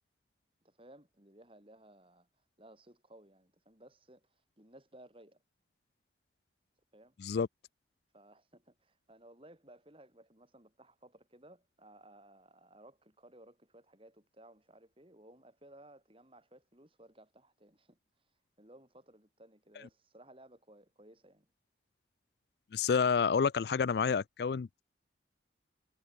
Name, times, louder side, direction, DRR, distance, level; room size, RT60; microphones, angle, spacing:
voice 1, 0.6-2.3 2.6-5.4 6.9-7.2 8.1-18.0 18.6-21.5, right 1 dB, 30° right, 6.1 m, -58 dB
voice 2, 22.7-24.8, left 6 dB, 60° left, 0.4 m, -29 dB
head